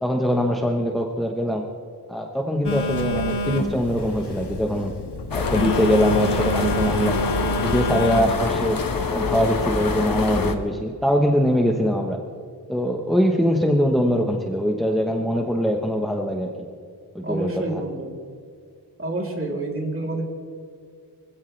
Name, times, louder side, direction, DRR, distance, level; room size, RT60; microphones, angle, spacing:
voice 1, 0.0-1.6 2.1-4.9 5.3-7.3 7.6-8.8 9.1-12.2 12.7-16.5 17.1-17.8, equal, ahead, 1 dB, 1.1 m, -22 dB
Telephone, 2.6-8.2, left 1 dB, 85° left, 1.7 m, -27 dB
sound 1, 5.3-10.6, left 4 dB, 60° left, 1.4 m, -25 dB
voice 2, 17.2-18.1 19.0-20.2, right 2 dB, 35° right, -1 dB, 3.2 m, -28 dB
24.5 x 16.5 x 3.3 m, 2.3 s
wide cardioid pair, 160°, 39 cm